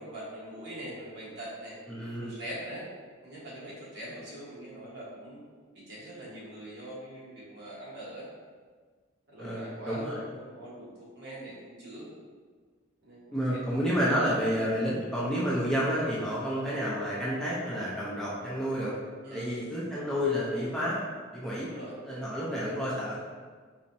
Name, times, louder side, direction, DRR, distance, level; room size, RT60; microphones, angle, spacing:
voice 1, 0.0-1.8 2.2-2.8 3.2-5.4 5.7-8.3 9.3-12.1 13.0-13.6 19.2-19.6 21.6-22.0, right 1 dB, 60° right, -7 dB, 1.2 m, -43 dB
voice 2, 1.9-2.3 9.4-10.2 13.3-18.9 19.3-21.0 21.3-21.7 22.1-23.2, equal, ahead, -8 dB, 0.5 m, -30 dB
4.1 x 2.8 x 2.6 m, 1.5 s
head